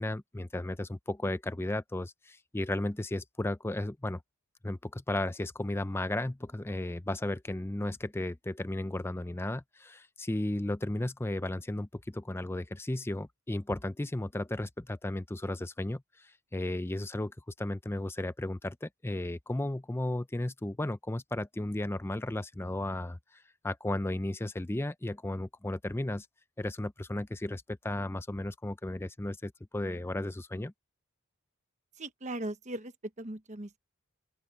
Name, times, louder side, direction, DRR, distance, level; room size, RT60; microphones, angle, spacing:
voice 1, 0.0-4.2 4.6-23.2 23.6-26.3 26.6-30.7, left 1 dB, 10° left, 0.5 m, -34 dB
voice 2, 32.0-33.8, right 1 dB, 35° right, 1.2 m, -39 dB
open air
head